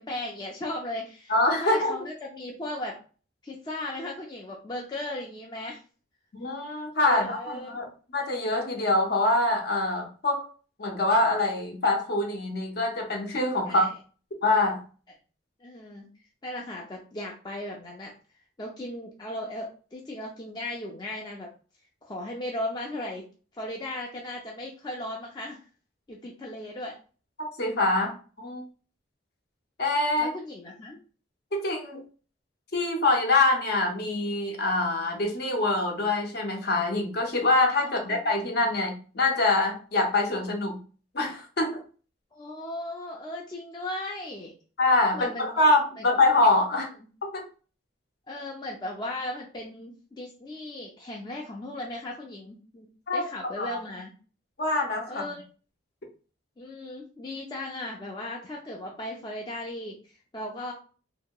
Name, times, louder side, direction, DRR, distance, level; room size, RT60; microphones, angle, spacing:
voice 1, 0.0-3.0 3.4-5.8 7.1-7.8 13.6-13.9 15.6-16.1 16.4-18.1 18.6-21.5 22.0-23.2 23.5-25.6 26.1-27.0 30.2-31.0 37.8-38.2 42.3-44.5 45.1-45.5 46.0-46.1 48.3-52.9 53.1-54.1 55.1-55.4 56.6-60.0 60.3-60.7, left 1 dB, 20° left, -1 dB, 0.4 m, -36 dB
voice 2, 1.3-2.0 6.3-7.9 8.1-10.5 10.8-13.9 14.4-14.8 27.4-28.6 29.8-30.3 31.5-32.0 32.7-40.8 41.1-41.8 44.8-46.9 47.2-47.4 53.1-53.2 53.6-53.8 54.6-55.3, left 2 dB, 55° left, 2 dB, 0.7 m, -25 dB
2.7 x 2.7 x 2.2 m, 0.38 s
head